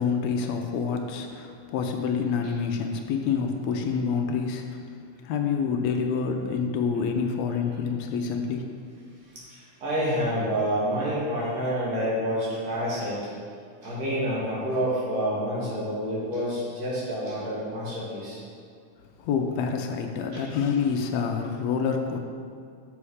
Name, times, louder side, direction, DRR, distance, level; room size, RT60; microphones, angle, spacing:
voice 1, 0.0-4.8 5.2-8.8 19.2-22.2, left 6 dB, 80° left, 3 dB, 1.6 m, -27 dB
voice 2, 9.5-13.2 13.8-18.4 20.3-20.4, equal, 55° right, -8 dB, 3.3 m, -28 dB
7.1 x 6.1 x 4.9 m, 2.3 s
omnidirectional pair, 3.6 m